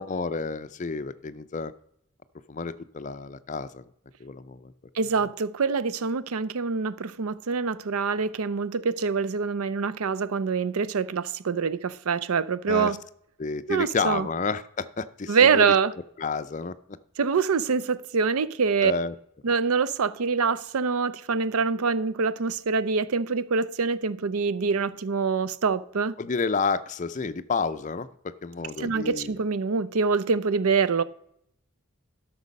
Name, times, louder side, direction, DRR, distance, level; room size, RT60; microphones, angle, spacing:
voice 1, 0.0-1.7 2.5-3.8 4.2-4.7 12.7-12.9 13.4-15.7 16.2-16.7 18.8-19.2 26.2-29.4, left 4 dB, 35° left, 0.5 m, -30 dB
voice 2, 4.9-13.0 13.7-14.3 15.3-15.9 17.2-18.9 19.4-26.1 28.8-31.0, right 5 dB, 90° right, 0.6 m, -25 dB
12.0 x 6.1 x 5.3 m
head